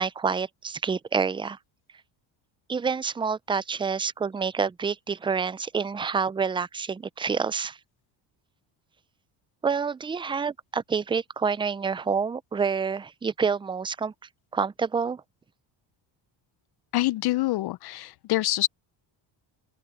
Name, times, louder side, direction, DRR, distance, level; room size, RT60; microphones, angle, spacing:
voice 1, 0.0-1.6 2.7-7.8 9.6-14.1 14.5-15.2, right 5 dB, 10° right, 0.3 m, -28 dB
voice 2, 16.9-18.7, left 17 dB, 55° left, 0.5 m, -26 dB
open air
cardioid pair, 105°, 48 cm